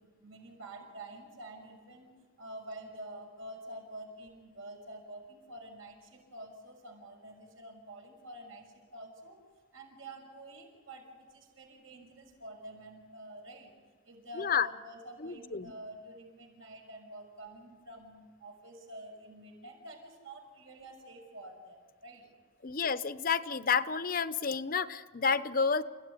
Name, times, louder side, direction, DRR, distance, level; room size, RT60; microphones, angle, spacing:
voice 1, 0.0-2.1 2.4-9.4 9.7-13.7 14.0-22.3, right 1 dB, 80° right, 2 dB, 6.3 m, -48 dB
voice 2, 14.4-14.7 15.2-15.7 22.6-25.8, left 6 dB, 45° left, 13 dB, 0.8 m, -30 dB
30.0 x 16.5 x 9.8 m, 1.5 s
head